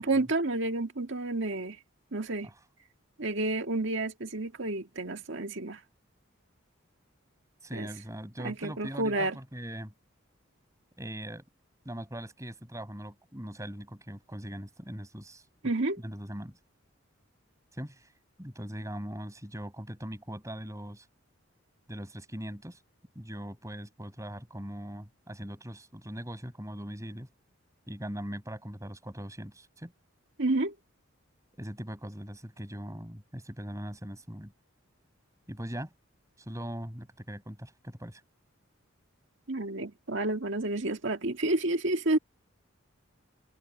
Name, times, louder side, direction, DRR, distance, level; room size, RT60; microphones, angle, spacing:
voice 1, 0.0-1.8 2.1-2.5 3.2-5.8 7.7-7.9 8.4-9.4 15.6-16.0 30.4-30.7 39.5-42.2, right 2 dB, 60° right, 1.9 m, -30 dB
voice 2, 7.6-9.9 11.0-11.4 11.8-15.4 16.0-16.5 17.7-18.1 18.4-21.1 21.9-22.8 23.1-27.3 27.9-29.9 31.6-34.5 35.5-35.9 36.5-38.2, equal, 15° right, 7.7 m, -40 dB
head